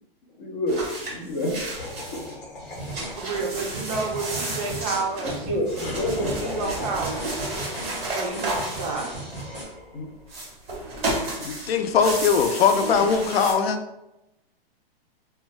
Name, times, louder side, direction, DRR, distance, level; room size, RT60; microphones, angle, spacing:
voice 1, 0.4-0.8 1.1-1.5 2.1-2.2 5.2-6.5 9.9-10.1 11.4-11.6 12.7-13.1, left 1 dB, 20° left, -1 dB, 0.4 m, -29 dB
sound 1, 0.7-2.3 2.7-9.7 10.2-13.5, right 2 dB, 20° right, 1.5 m, -33 dB
Laughter, 1.8-10.2, left 2 dB, 70° left, 1.0 m, -40 dB
sound 2, 2.6-9.6, right 1 dB, ahead, 1.1 m, -38 dB
voice 2, 3.2-5.6 6.4-7.4 8.1-9.1, right 4 dB, 40° right, 1 dB, 0.5 m, -30 dB
voice 3, 11.4-13.8, left 6 dB, 90° left, 8 dB, 0.5 m, -21 dB
2.6 x 2.2 x 3.1 m, 0.93 s
hypercardioid pair, 155°, 30 cm